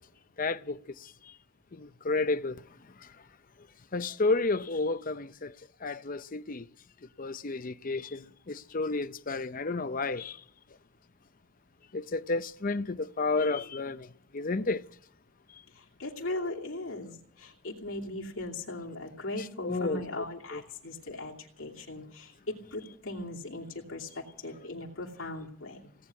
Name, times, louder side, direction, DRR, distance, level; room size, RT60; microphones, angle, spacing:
voice 1, 0.4-0.8 1.7-2.6 3.9-5.5 5.8-6.6 7.2-10.4 11.9-14.1 14.3-14.8 19.6-20.0 20.5-20.6, left 3 dB, 40° left, 0.6 m, -31 dB
voice 2, 15.7-25.9, left 2 dB, 75° left, 2.7 m, -39 dB
18.0 x 9.4 x 8.3 m
head